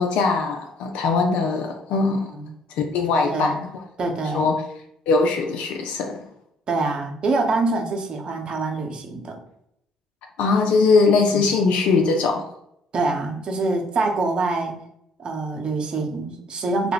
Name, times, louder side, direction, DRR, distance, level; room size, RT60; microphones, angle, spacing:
voice 1, 0.0-2.3 2.7-3.7 4.3-4.6 5.1-6.2 10.4-12.5, left 4 dB, 65° left, 3 dB, 0.3 m, -21 dB
voice 2, 3.2-3.6 4.0-4.5 6.7-9.4 11.3-11.5 12.9-14.8 15.2-16.9, right 3 dB, 45° right, 2 dB, 0.7 m, -25 dB
2.2 x 2.1 x 3.5 m, 0.76 s
hypercardioid pair, 50°, 2 cm